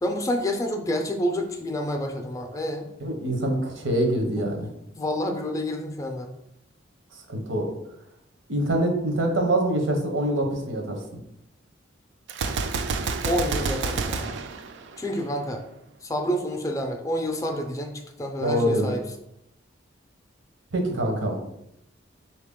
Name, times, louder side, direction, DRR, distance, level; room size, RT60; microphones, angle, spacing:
voice 1, 0.0-2.9 4.4-4.5 4.9-6.3 13.2-14.4 15.0-15.6 16.0-19.0, equal, 15° left, 4 dB, 0.4 m, -28 dB
voice 2, 3.0-4.7 7.3-7.7 8.5-11.0 18.4-18.9 20.7-21.4, right 1 dB, 90° right, 2 dB, 1.0 m, -24 dB
Gunshot gunfire, 12.3-15.4, right 4 dB, 65° right, 0.4 m, -29 dB
4.1 x 2.9 x 3.6 m, 0.81 s
head